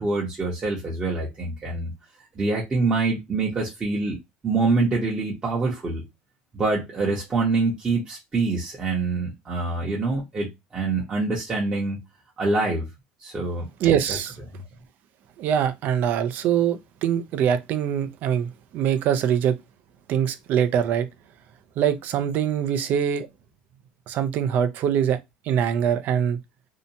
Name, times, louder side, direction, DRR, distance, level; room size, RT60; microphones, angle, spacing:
voice 1, 0.0-1.9 2.4-4.2 4.4-6.0 6.5-12.0 12.4-12.9 13.2-14.2, right 3 dB, 20° right, 0.8 m, -25 dB
voice 2, 13.8-14.3 15.4-19.5 20.1-21.1 21.8-23.3 24.1-25.2 25.5-26.4, right 9 dB, 55° right, 0.5 m, -23 dB
2.7 x 2.2 x 2.7 m
cardioid pair, 135°, 4 cm